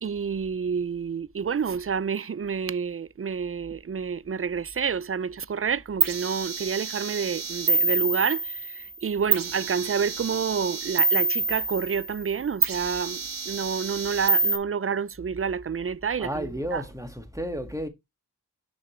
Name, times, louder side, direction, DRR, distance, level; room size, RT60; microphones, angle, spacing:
voice 1, 0.0-16.8, right 6 dB, 35° right, 0.4 m, -29 dB
sound 1, 6.0-8.9 9.3-12.2 12.6-14.6, right 3 dB, 55° right, 0.9 m, -27 dB
voice 2, 16.2-17.9, equal, 10° right, 1.9 m, -32 dB
6.4 x 5.7 x 3.2 m
wide cardioid pair, 40°, 42 cm